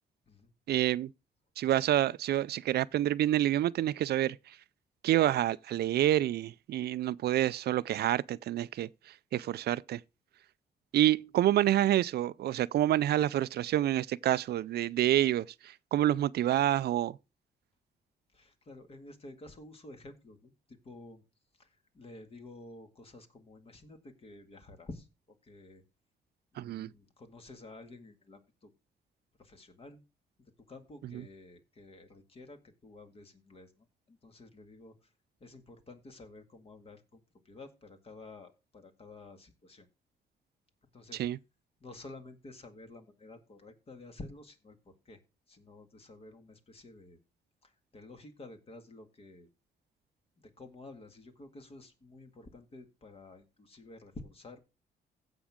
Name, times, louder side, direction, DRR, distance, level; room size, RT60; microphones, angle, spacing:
voice 1, 0.7-1.1 1.6-4.4 5.0-8.9 9.3-10.0 10.9-17.2 26.6-26.9 41.2-41.4, right 13 dB, 70° right, 0.4 m, -28 dB
voice 2, 18.3-21.2 21.5-25.1 25.4-25.8 26.5-28.7 29.4-30.0 30.7-35.1 35.4-39.9 40.9-41.3 41.8-45.2 45.5-47.2 47.6-49.5 50.4-54.6, left 2 dB, 35° left, 2.1 m, -51 dB
16.0 x 6.1 x 3.7 m
cardioid pair, 140°, 17 cm